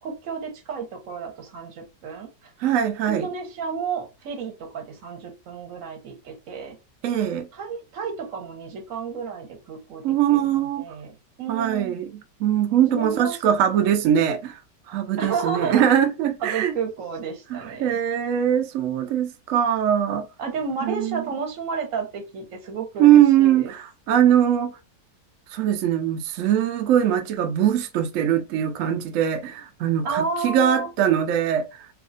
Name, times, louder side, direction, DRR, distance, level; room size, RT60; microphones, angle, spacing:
voice 1, 0.0-2.5 3.1-6.8 7.5-12.0 12.9-13.4 13.7-13.8 15.2-15.9 16.4-18.0 20.4-23.7 30.0-30.9, right 5 dB, 55° right, 1.1 m, -32 dB
voice 2, 2.6-3.3 7.0-7.5 10.0-10.8 11.5-12.1 12.4-14.6 14.9-16.7 17.5-20.3 20.8-21.2 23.0-24.8 25.5-31.9, right 10 dB, 75° right, 0.7 m, -21 dB
2.8 x 2.3 x 3.8 m
omnidirectional pair, 1.9 m